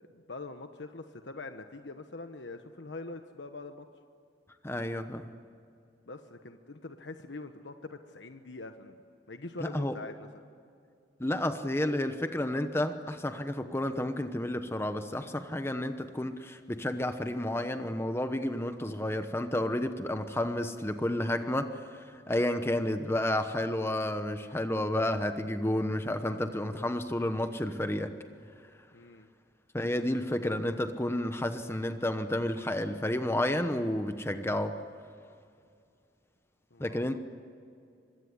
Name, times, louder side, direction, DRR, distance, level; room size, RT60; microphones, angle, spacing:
voice 1, 0.1-3.9 6.1-9.0 9.3-10.3 28.9-29.3 36.7-37.2, left 3 dB, 80° left, 7 dB, 1.2 m, -43 dB
voice 2, 4.6-5.3 9.6-9.9 11.2-28.1 29.7-34.8 36.8-37.2, left 1 dB, 15° left, 8 dB, 1.0 m, -31 dB
25.5 x 23.0 x 9.7 m, 2.4 s
head